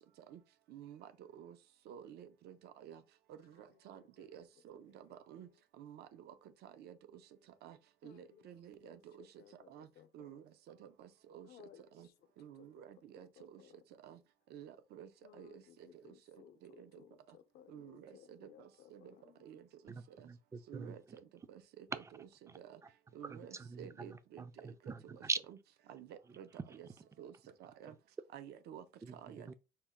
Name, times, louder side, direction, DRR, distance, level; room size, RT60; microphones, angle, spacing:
voice 1, 0.7-1.6 1.9-3.0 3.3-5.5 5.8-6.3 6.6-7.0 7.6-7.8 8.0-9.3 9.7-9.9 10.1-11.5 11.9-12.1 12.4-13.6 14.0-14.2 14.5-15.6 16.3-17.0 17.7-19.1 19.4-19.9 20.2-20.3 20.7-21.2 21.5-22.8 23.1-24.7 25.1-25.6 25.9-26.5 26.7-26.9 27.2-27.3 27.6-27.9 28.3-28.8 29.1-29.5, right 9 dB, 70° right, 0.5 m, -52 dB
voice 2, 3.4-4.3 4.9-5.0 5.4-5.6 8.0-8.5 8.8-10.3 11.4-12.8 13.4-13.8 15.2-19.5, left 10 dB, 70° left, 0.6 m, -62 dB
voice 3, 19.9-21.0 22.0-22.1 22.5-22.6 23.2-25.4 29.0-29.5, right 4 dB, 15° right, 0.3 m, -43 dB
4.2 x 2.1 x 3.5 m
cardioid pair, 110°, 17 cm